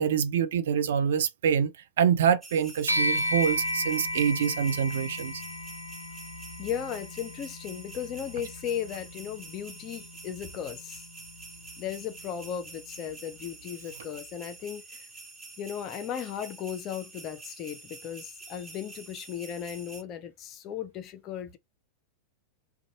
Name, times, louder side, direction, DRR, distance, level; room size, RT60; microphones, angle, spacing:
voice 1, 0.0-1.7 2.0-5.4, right 8 dB, 60° right, 0.5 m, -25 dB
sound 1, 2.4-20.0, right 3 dB, 15° right, 1.0 m, -47 dB
sound 2, 2.9-12.5, equal, 85° left, 0.5 m, -35 dB
voice 2, 6.6-11.0 11.8-15.1 15.6-21.6, left 9 dB, 35° left, 0.6 m, -36 dB
2.5 x 2.3 x 2.8 m
figure-of-eight pair, 90°, 0 cm